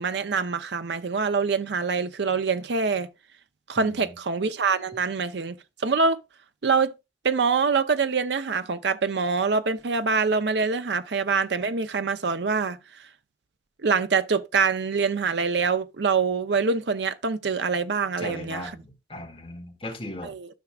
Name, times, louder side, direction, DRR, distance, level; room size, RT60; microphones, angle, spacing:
voice 1, 0.0-3.1 3.7-5.6 5.8-6.2 6.6-6.9 7.2-12.8 13.8-18.7 20.2-20.5, right 5 dB, 80° right, 0.6 m, -25 dB
voice 2, 3.8-4.2 18.2-20.3, left 1 dB, 30° left, 2.2 m, -38 dB
13.0 x 6.0 x 2.4 m
head